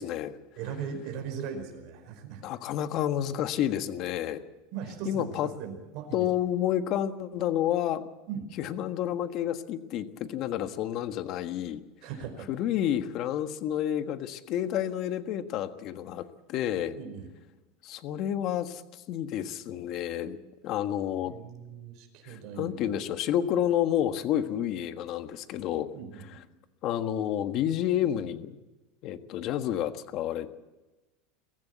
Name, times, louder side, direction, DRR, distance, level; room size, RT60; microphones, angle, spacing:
voice 1, 0.0-0.4 2.4-4.4 5.0-5.5 6.1-8.0 8.6-11.8 12.5-17.0 17.8-20.4 20.6-21.3 22.2-25.9 26.8-28.6 29.0-30.5, left 11 dB, 45° left, 9 dB, 1.4 m, -30 dB
voice 2, 0.6-2.4 4.7-6.3 8.3-8.5 12.0-12.5 16.9-17.3 21.2-22.8 25.9-26.4, right 7 dB, 50° right, 5 dB, 4.9 m, -39 dB
23.0 x 15.5 x 8.2 m, 1.1 s
supercardioid pair, 150°, 0 cm